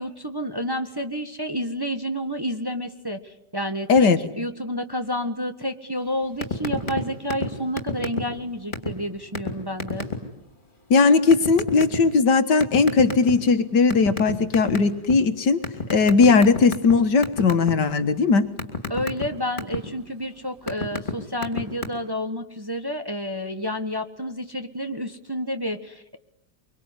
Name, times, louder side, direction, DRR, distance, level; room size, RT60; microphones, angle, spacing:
voice 1, 0.0-10.1 18.9-26.2, equal, 15° right, 7 dB, 1.3 m, -30 dB
sound 1, 6.4-7.0 7.3-7.5 7.8-8.4 8.7-8.9 9.3-9.5 9.8-10.1 11.3-12.0 12.6-13.5 13.9-15.1 15.6-16.9 17.2-17.7 18.1-19.8 20.4-21.1 21.4-21.8, left 4 dB, 25° left, 3.3 m, -28 dB
voice 2, 10.9-15.6 15.9-18.4, left 4 dB, 75° left, 10 dB, 2.1 m, -18 dB
25.0 x 24.5 x 9.7 m, 0.81 s
omnidirectional pair, 1.9 m